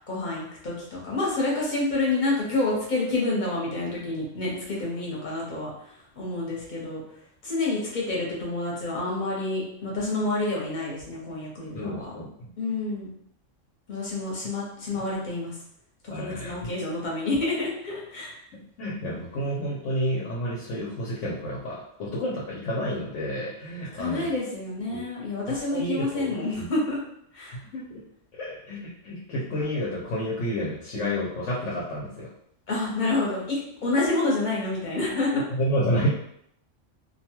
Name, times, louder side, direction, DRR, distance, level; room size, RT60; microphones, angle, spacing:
voice 1, 0.1-5.7 6.2-7.0 7.4-12.1 12.6-13.1 13.9-15.6 16.0-18.3 23.9-27.0 27.3-27.6 32.7-35.4, left 2 dB, 40° left, -4 dB, 0.9 m, -28 dB
voice 2, 11.7-12.5 14.9-15.1 16.1-16.5 18.5-24.3 24.9-25.0 25.7-26.7 27.5-28.0 28.3-32.3 35.3-36.1, equal, 75° left, -5 dB, 1.0 m, -30 dB
2.6 x 2.2 x 2.9 m, 0.71 s
omnidirectional pair, 1.3 m